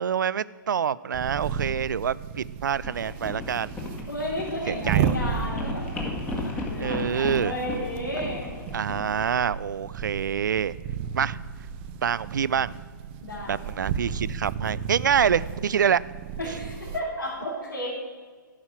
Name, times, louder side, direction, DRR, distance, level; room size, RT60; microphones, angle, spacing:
voice 1, 0.0-3.7 4.7-5.1 6.8-7.5 8.7-10.7 11.2-11.4 12.0-12.7 13.5-16.0, right 8 dB, 65° right, 20 dB, 0.4 m, -26 dB
sound 1, 1.1-17.0, right 7 dB, 35° right, 0.7 m, -34 dB
sound 2, 2.8-9.5, left 2 dB, 15° left, 1.6 m, -35 dB
voice 2, 4.1-5.8 6.4-8.5 13.2-13.6 16.4-17.9, left 1 dB, 80° left, -6 dB, 3.0 m, -33 dB
11.5 x 5.6 x 8.7 m, 1.5 s
figure-of-eight pair, 125°, 11 cm